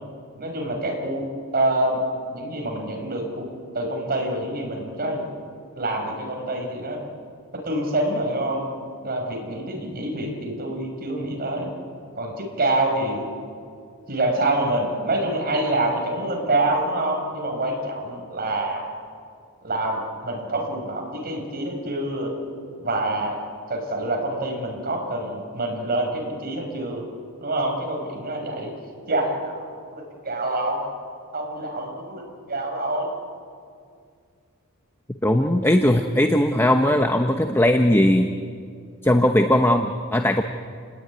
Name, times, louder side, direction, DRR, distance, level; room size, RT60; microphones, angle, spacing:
voice 1, 0.4-2.0 2.3-3.5 3.7-5.2 5.8-7.0 7.5-8.6 9.0-11.7 12.1-13.2 14.1-18.9 19.6-22.3 22.8-23.4 23.7-27.0 27.4-28.7 29.1-30.8 31.3-33.1, right 1 dB, 45° right, 1 dB, 5.9 m, -26 dB
voice 2, 35.2-38.3 39.0-40.4, left 1 dB, 10° left, 5 dB, 1.0 m, -19 dB
29.5 x 20.0 x 9.7 m, 2.3 s
head